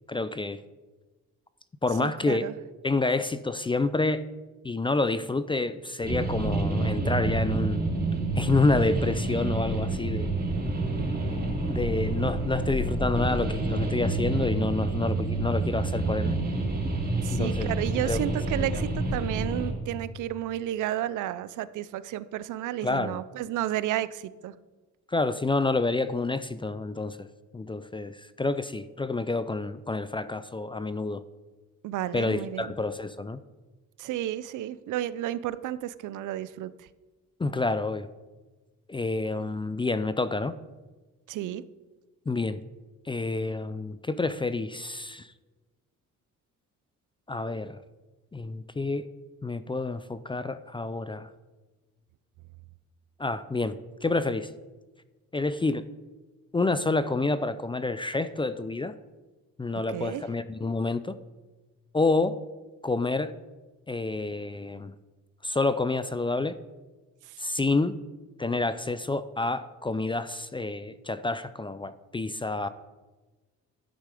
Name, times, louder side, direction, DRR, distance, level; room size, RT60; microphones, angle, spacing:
voice 1, 0.1-0.6 1.8-2.5 2.8-4.2 4.6-7.9 8.4-10.3 11.7-16.4 17.3-17.7 18.1-18.2 18.7-18.8 22.8-23.2 25.1-27.3 27.5-31.2 32.1-33.4 37.4-38.1 38.9-40.5 42.3-42.6 43.1-45.3 47.3-47.8 48.3-49.1 49.4-51.3 53.2-54.5 55.3-55.9 56.5-58.9 59.6-61.2 61.9-62.4 62.8-63.3 63.9-64.9 65.4-66.6 67.4-68.0 68.4-72.7, left 3 dB, 15° left, 13 dB, 0.5 m, -28 dB
voice 2, 2.0-2.5 17.2-24.5 31.8-32.7 34.0-36.7 41.3-41.6 59.9-60.2, right 12 dB, 80° right, 16 dB, 0.6 m, -32 dB
sound 1, 6.0-19.7, right 2 dB, 30° right, 3.3 m, -28 dB
12.0 x 9.9 x 5.0 m, 1.2 s
cardioid pair, 90°, 30 cm